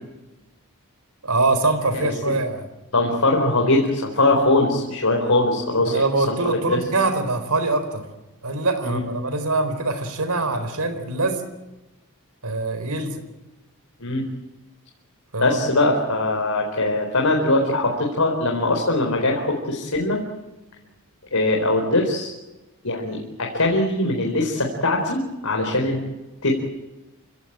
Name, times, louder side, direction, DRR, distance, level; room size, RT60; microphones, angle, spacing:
voice 1, 1.2-2.6 5.8-8.0 8.4-11.4 12.4-13.2 15.3-15.6, right 2 dB, 85° right, 10 dB, 4.4 m, -23 dB
voice 2, 2.9-5.9 6.3-6.4 6.7-6.8 8.8-9.0 14.0-14.2 15.4-20.2 21.3-22.3 22.8-26.0 26.4-26.5, left 2 dB, 75° left, 0 dB, 4.4 m, -21 dB
27.5 x 17.5 x 8.9 m, 1.1 s
head